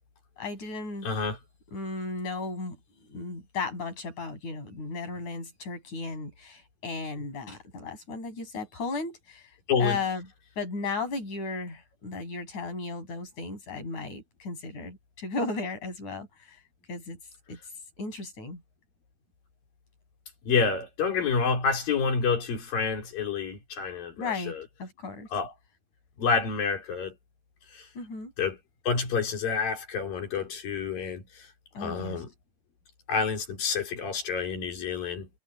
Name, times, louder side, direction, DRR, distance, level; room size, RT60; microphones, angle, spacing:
voice 1, 0.4-1.1 1.7-2.8 3.1-9.5 9.8-10.2 10.6-16.6 16.9-17.2 17.5-17.6 18.0-18.6 24.2-25.3 28.0-28.3 31.7-32.2, left 3 dB, 55° left, 9.5 m, -35 dB
voice 2, 1.0-1.4 9.7-10.0 20.4-24.6 25.3-25.5 26.2-27.1 27.7-27.9 28.4-28.6 28.9-31.5 31.8-32.3 33.1-35.3, left 5 dB, 85° left, 6.0 m, -28 dB
omnidirectional pair, 3.9 m